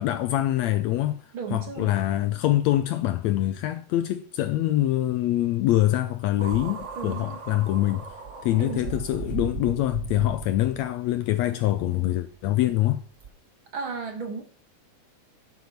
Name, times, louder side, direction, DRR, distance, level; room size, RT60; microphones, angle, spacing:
voice 1, 0.0-1.2 1.5-8.0 8.4-13.0, left 14 dB, 80° left, 1.6 m, -24 dB
voice 2, 1.3-2.0 7.0-7.4 8.6-8.9 13.7-14.4, right 5 dB, 45° right, 2.2 m, -34 dB
sound 1, 6.4-10.9 11.7-11.8 13.2-13.3, right 6 dB, 90° right, 0.6 m, -37 dB
12.0 x 8.9 x 5.8 m
omnidirectional pair, 3.8 m